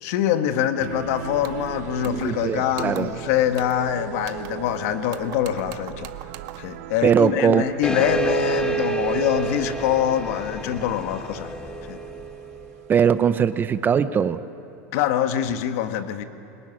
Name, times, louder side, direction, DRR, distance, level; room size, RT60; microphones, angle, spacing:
voice 1, 0.0-6.1 6.6-11.5 11.9-12.0 14.9-16.2, left 10 dB, 65° left, 8 dB, 1.5 m, -24 dB
sound 1, 0.8-13.7, right 14 dB, 70° right, 0.7 m, -39 dB
sound 2, 1.4-1.7 2.0-2.4 2.7-3.2 3.5-3.9 4.2-4.8 5.1-6.8, right 14 dB, 50° right, 1.0 m, -43 dB
voice 2, 2.1-3.1 7.0-8.0 12.9-14.4, right 7 dB, 25° right, 13 dB, 0.7 m, -21 dB
sound 3, 7.8-12.9, right 3 dB, 10° left, 1.4 m, -28 dB
22.5 x 19.5 x 9.7 m, 2.6 s
supercardioid pair, 130°, 8 cm